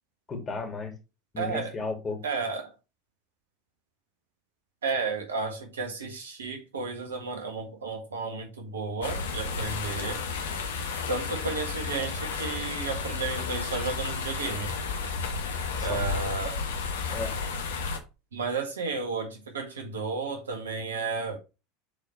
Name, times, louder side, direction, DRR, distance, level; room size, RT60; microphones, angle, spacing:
voice 1, 0.3-0.9 1.3-2.2 15.8-16.1 17.1-17.3, left 3 dB, 25° left, 2.7 m, -34 dB
voice 2, 1.4-1.7 2.2-2.7 4.8-10.2 11.1-14.7 15.8-16.6 18.3-21.4, right 4 dB, 75° right, 1.7 m, -32 dB
sound 1, 9.0-18.0, left 4 dB, 70° left, 1.1 m, -32 dB
6.9 x 4.3 x 4.2 m
figure-of-eight pair, 75°, 0 cm